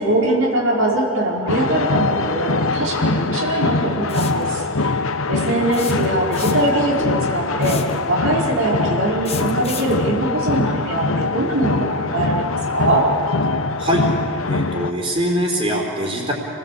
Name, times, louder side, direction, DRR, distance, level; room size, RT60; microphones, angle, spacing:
voice 1, 0.0-5.0 5.3-13.0, right 1 dB, 75° right, -3 dB, 5.0 m, -22 dB
sound 1, 1.5-14.9, left 3 dB, 75° left, 1.1 m, -23 dB
sound 2, 4.1-4.4 5.7-6.8 7.6-8.0 9.2-10.0, left 8 dB, 30° left, 1.7 m, -32 dB
voice 2, 14.4-16.3, equal, 30° right, -4 dB, 4.2 m, -22 dB
29.5 x 19.0 x 8.7 m, 2.5 s
head